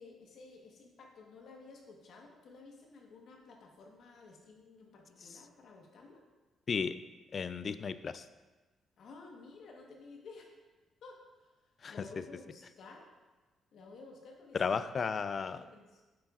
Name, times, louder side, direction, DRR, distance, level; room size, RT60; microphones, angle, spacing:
voice 1, 0.0-6.2 9.0-10.5 11.0-13.1 13.7-14.8 15.4-16.0, left 3 dB, 65° left, 1 dB, 1.2 m, -54 dB
voice 2, 7.3-8.3 11.8-12.1 14.5-15.6, left 5 dB, 45° left, 13 dB, 0.3 m, -34 dB
7.7 x 7.3 x 2.4 m, 1.2 s
cardioid pair, 90°, 0 cm